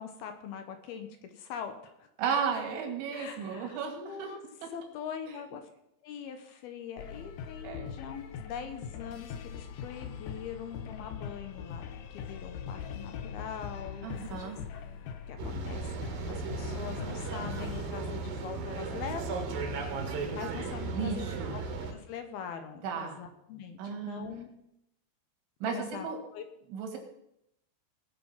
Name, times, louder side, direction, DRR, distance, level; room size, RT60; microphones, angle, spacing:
voice 1, 0.0-2.1 3.1-4.4 4.7-5.7 6.0-11.8 12.1-14.8 15.3-15.9 16.3-23.8 24.1-24.5 25.7-26.4, left 7 dB, 70° left, 7 dB, 2.6 m, -43 dB
voice 2, 2.2-4.3 7.6-7.9 14.0-14.6 20.9-21.6 22.8-23.2 23.8-24.2 25.6-26.2 26.7-27.0, right 6 dB, 85° right, 2 dB, 4.5 m, -34 dB
sound 1, 7.0-17.9, left 7 dB, 85° left, 1.8 m, -42 dB
sound 2, 15.4-21.9, right 4 dB, 60° right, 3.0 m, -36 dB
19.0 x 7.0 x 5.7 m, 0.80 s
omnidirectional pair, 5.2 m